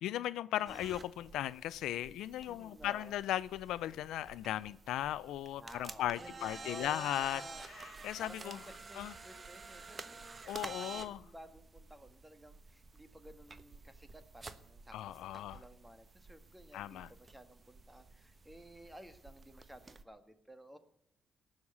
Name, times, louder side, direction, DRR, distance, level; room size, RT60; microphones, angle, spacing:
voice 1, 0.0-7.4 8.0-8.6 8.9-9.1 10.5-11.2 14.9-15.6 16.7-17.1, left 13 dB, 85° left, 0.4 m, -37 dB
sound 1, 0.7-20.0, right 4 dB, 30° right, 1.0 m, -51 dB
voice 2, 2.5-3.1 5.6-7.6 8.0-20.8, equal, 10° right, 1.6 m, -54 dB
18.0 x 6.5 x 9.7 m
cardioid pair, 90°, 0 cm